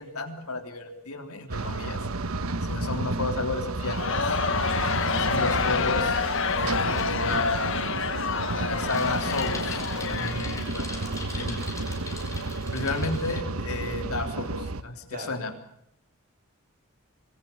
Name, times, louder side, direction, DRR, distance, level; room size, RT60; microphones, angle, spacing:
voice 1, 0.0-2.0 2.6-4.0 5.1-6.2 6.5-7.8 8.6-10.9 11.3-11.6 12.7-15.5, left 3 dB, 85° left, 5 dB, 3.6 m, -32 dB
voice 2, 1.5-2.0 4.7-5.0 10.9-11.6 15.1-15.3, right 2 dB, 40° right, 9 dB, 4.2 m, -44 dB
sound 1, 1.5-14.8, right 2 dB, 75° right, 1.2 m, -31 dB
Crowd, 3.8-11.1, left 5 dB, 60° left, 1.4 m, -28 dB
Bicycle, 3.9-13.4, left 3 dB, 15° left, 4.6 m, -43 dB
26.0 x 20.5 x 7.2 m, 0.72 s
head